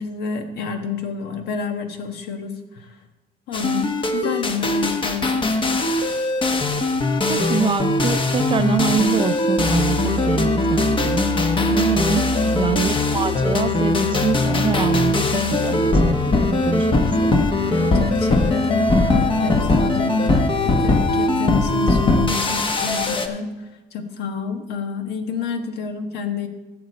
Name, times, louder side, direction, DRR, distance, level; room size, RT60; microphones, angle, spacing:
voice 1, 0.0-3.0 3.5-5.9 11.6-11.9 17.7-26.5, left 5 dB, 75° left, 6 dB, 1.3 m, -29 dB
sound 1, 3.5-23.3, left 2 dB, 30° left, 1.0 m, -20 dB
voice 2, 7.3-11.3 11.7-12.2 12.5-17.4, right 6 dB, 30° right, 11 dB, 0.6 m, -25 dB
16.0 x 6.6 x 4.2 m, 1.1 s
cardioid pair, 110°, 17 cm